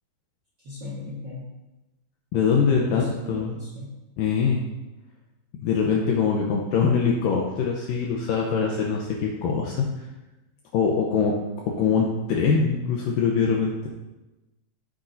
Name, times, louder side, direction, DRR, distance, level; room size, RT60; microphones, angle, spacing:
voice 1, 0.6-1.5 2.7-3.9, left 3 dB, 75° right, -5 dB, 1.0 m, -36 dB
voice 2, 2.3-3.6 4.2-4.6 5.6-9.9 10.7-11.4 11.8-13.9, left 6 dB, 75° left, -1 dB, 2.3 m, -23 dB
13.5 x 8.1 x 2.7 m, 1.1 s
omnidirectional pair, 4.4 m